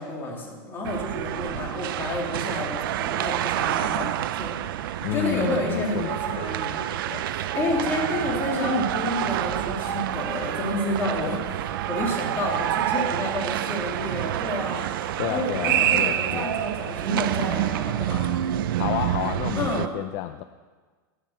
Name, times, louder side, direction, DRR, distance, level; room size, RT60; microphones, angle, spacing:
voice 1, 0.0-18.4 19.6-19.9, left 1 dB, 20° left, -2 dB, 2.2 m, -30 dB
sound 1, 0.8-19.9, right 12 dB, 75° right, 0.4 m, -28 dB
voice 2, 5.0-6.5 15.2-16.5 18.8-20.4, left 14 dB, 45° left, 10 dB, 0.4 m, -30 dB
sound 2, 8.4-16.4, right 4 dB, 35° right, 1.2 m, -47 dB
10.5 x 5.9 x 8.2 m, 1.4 s
supercardioid pair, 155°, 12 cm